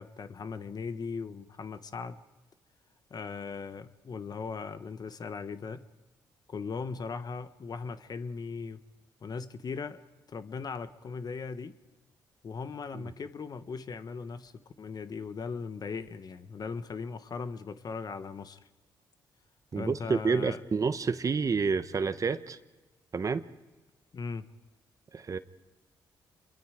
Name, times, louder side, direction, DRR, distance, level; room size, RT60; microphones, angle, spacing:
voice 1, 0.0-2.2 3.1-5.8 6.5-8.8 9.2-10.0 10.3-11.8 12.4-18.6 19.7-20.6 24.1-24.4, left 5 dB, 45° left, 1.1 m, -38 dB
voice 2, 19.7-22.6 23.1-23.4 25.1-25.4, right 5 dB, 40° right, 1.1 m, -29 dB
28.5 x 23.0 x 5.0 m
supercardioid pair, 60°, 9 cm